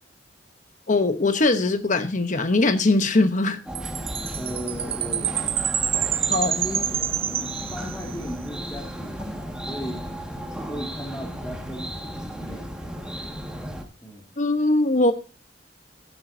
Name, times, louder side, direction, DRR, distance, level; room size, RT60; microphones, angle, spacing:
voice 1, 0.9-3.6 6.3-6.5 14.4-15.1, left 2 dB, 45° left, 9 dB, 1.0 m, -21 dB
sound 1, 3.7-13.8, equal, 5° right, 1.7 m, -35 dB
Chime, 3.8-8.2, right 10 dB, 30° right, 0.5 m, -27 dB
voice 2, 4.3-5.7 6.4-6.8 7.7-10.0 10.6-12.7 14.0-14.3, equal, 15° left, 0 dB, 2.2 m, -36 dB
15.5 x 11.5 x 2.7 m, 0.30 s
head